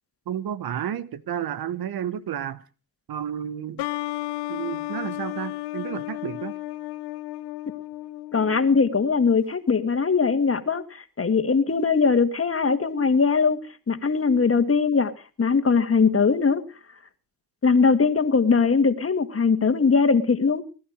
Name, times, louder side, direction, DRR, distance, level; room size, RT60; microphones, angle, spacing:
voice 1, 0.3-2.6 3.1-3.8 4.5-6.6, right 9 dB, 65° right, 1.2 m, -31 dB
sound 1, 3.8-9.2, left 17 dB, 85° left, 1.0 m, -33 dB
voice 2, 8.3-13.6 13.9-15.1 15.4-16.6 17.6-20.6, left 5 dB, 35° left, 2.1 m, -21 dB
21.0 x 11.0 x 5.1 m
hypercardioid pair, 50°, 39 cm